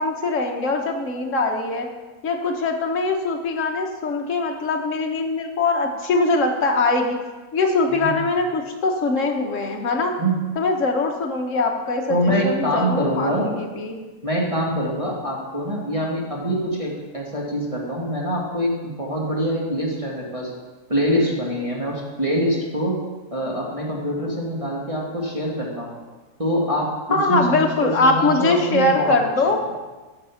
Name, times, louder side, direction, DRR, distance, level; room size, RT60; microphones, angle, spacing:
voice 1, 0.0-1.9 2.2-7.2 7.5-10.1 10.6-13.9 27.1-29.6, left 3 dB, 55° left, 2 dB, 1.5 m, -22 dB
voice 2, 12.1-13.5 14.2-20.5 20.9-23.0 23.3-25.9 26.4-29.2 29.4-29.5, equal, 20° right, -4 dB, 1.7 m, -24 dB
10.5 x 6.7 x 5.8 m, 1.3 s
omnidirectional pair, 1.6 m